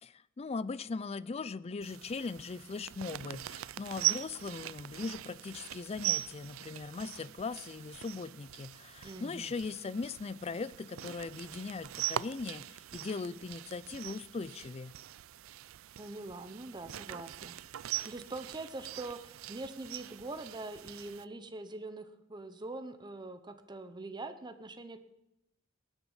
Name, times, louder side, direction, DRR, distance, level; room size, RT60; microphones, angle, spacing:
voice 1, 0.0-14.9, left 4 dB, 30° left, 0.4 m, -39 dB
sound 1, 1.8-21.2, right 14 dB, 85° right, 0.4 m, -41 dB
voice 2, 9.0-9.5 16.0-17.5 18.1-25.0, right 2 dB, 20° right, 0.8 m, -43 dB
19.5 x 9.1 x 5.5 m
head